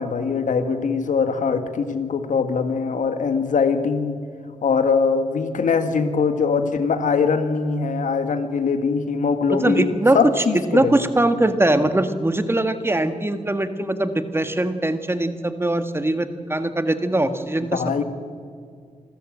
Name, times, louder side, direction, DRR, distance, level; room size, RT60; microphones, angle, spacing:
voice 1, 0.0-4.2 4.6-10.9 17.7-18.0, left 5 dB, 75° left, 8 dB, 1.8 m, -22 dB
voice 2, 9.5-10.4 10.7-18.0, right 1 dB, 20° right, 9 dB, 1.7 m, -21 dB
27.0 x 13.5 x 9.0 m, 2.2 s
cardioid pair, 75°, 13 cm